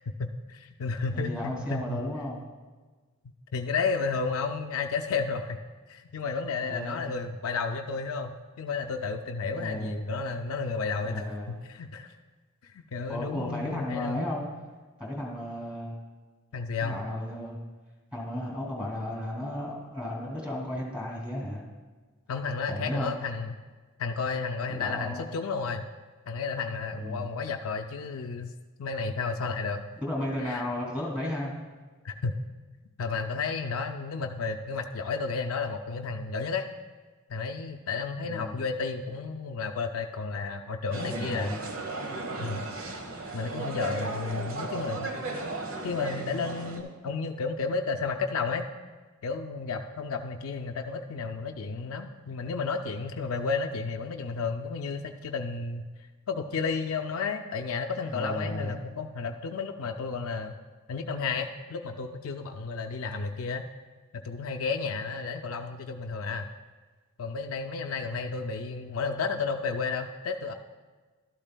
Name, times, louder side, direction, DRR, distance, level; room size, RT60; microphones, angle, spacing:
voice 1, 0.2-2.0 3.5-5.6 5.9-12.1 12.9-14.2 16.5-17.0 22.3-23.6 24.0-25.8 26.3-28.5 28.8-29.8 30.4-30.6 32.0-32.4 33.0-36.7 37.3-41.5 42.4-42.6 43.3-45.1 45.8-48.7 49.2-55.8 56.3-60.5 60.9-63.7 64.1-66.5 67.2-70.5, left 4 dB, 85° left, 4 dB, 0.4 m, -32 dB
voice 2, 1.1-2.4 6.6-7.2 9.5-10.0 11.0-11.5 13.1-14.4 15.0-15.9 16.8-17.6 18.1-21.6 22.7-23.1 24.7-25.3 26.9-27.3 30.0-31.6 38.2-38.6 41.0-41.6 58.1-58.8, left 1 dB, 5° right, -3 dB, 2.4 m, -34 dB
sound 1, 40.9-46.8, right 2 dB, 85° right, 1.2 m, -35 dB
12.0 x 12.0 x 2.2 m, 1.4 s
head